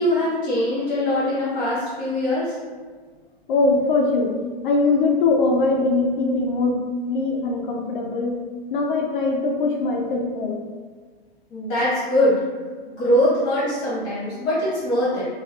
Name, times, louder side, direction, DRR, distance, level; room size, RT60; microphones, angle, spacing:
voice 1, 0.0-2.6 11.5-12.3 13.0-15.3, left 1 dB, 30° left, -9 dB, 1.3 m, -22 dB
voice 2, 3.5-4.4 4.6-8.4 8.7-10.6, left 3 dB, 55° left, 1 dB, 0.6 m, -21 dB
4.3 x 2.4 x 2.3 m, 1.4 s
hypercardioid pair, 140°, 31 cm